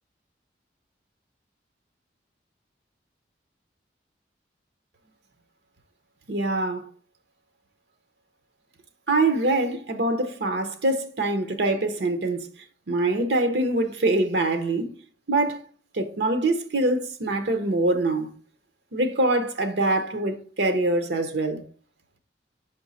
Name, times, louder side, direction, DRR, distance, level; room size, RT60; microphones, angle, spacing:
voice 1, 6.3-6.9 9.1-12.5 12.9-14.9 15.3-15.6 15.9-18.3 18.9-21.6, right 2 dB, 65° right, 0.7 m, -24 dB
5.6 x 5.2 x 4.0 m
head